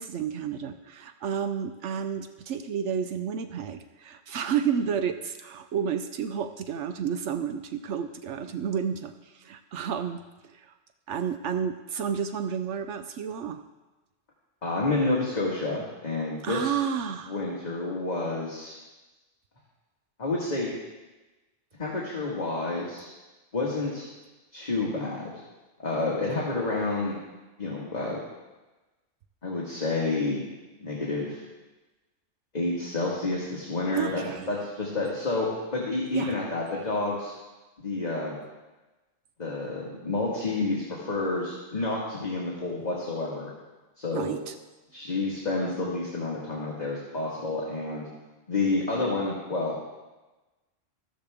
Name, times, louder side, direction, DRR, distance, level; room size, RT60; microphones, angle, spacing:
voice 1, 0.0-10.7 11.1-13.6 16.4-17.3 33.9-34.5 36.1-36.3 44.1-44.5, right 7 dB, 75° right, 9 dB, 1.0 m, -31 dB
voice 2, 14.6-16.7 17.3-18.7 20.2-20.7 21.8-23.1 23.5-24.1 24.5-25.3 25.8-27.1 27.6-28.2 29.4-30.4 30.8-31.4 32.5-34.2 34.5-37.3 37.8-38.4 39.4-43.5 44.0-44.3 44.9-48.1 48.5-49.8, left 2 dB, 35° left, -4 dB, 1.9 m, -29 dB
14.0 x 13.5 x 3.6 m, 1.2 s
omnidirectional pair, 1.2 m